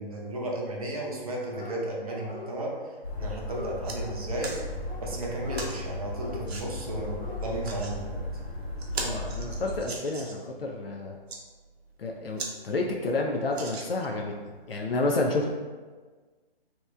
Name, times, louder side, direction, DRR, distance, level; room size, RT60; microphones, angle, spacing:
voice 1, 0.0-4.5 5.0-8.2, right 1 dB, 35° right, -3 dB, 0.6 m, -34 dB
Dog, 1.3-1.8 2.0-2.8 3.1-4.1 4.8-5.7 6.1-6.4 7.0-7.4 7.7-7.8, left 5 dB, 30° left, 0.9 m, -43 dB
sound 1, 3.0-9.8, left 1 dB, 85° left, 1.3 m, -36 dB
sound 2, 3.8-4.0 4.4-4.6 5.5-5.8 6.5-6.7 7.4-7.9 8.4-8.5 8.8-10.5 11.1-11.4 12.0-12.1 12.4-12.5 12.9-13.0 13.5-14.2 14.9-15.0, right 3 dB, 85° right, 0.7 m, -38 dB
voice 2, 9.0-11.2 12.0-14.3 14.7-15.5, left 2 dB, 70° left, 1 dB, 0.5 m, -30 dB
2.9 x 2.1 x 3.4 m, 1.4 s
hypercardioid pair, 175°, 31 cm